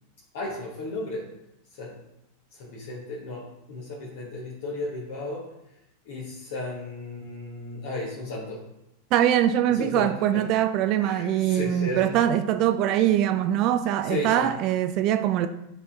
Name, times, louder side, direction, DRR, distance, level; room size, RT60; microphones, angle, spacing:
voice 1, 0.3-1.3 1.7-2.0 2.5-5.8 6.0-8.7 9.7-10.5 11.0-12.2 14.0-14.6, left 2 dB, 55° left, 1.2 m, -34 dB
voice 2, 9.1-15.5, right 11 dB, 40° right, 0.4 m, -23 dB
8.9 x 4.1 x 3.5 m
figure-of-eight pair, 90°, 0 cm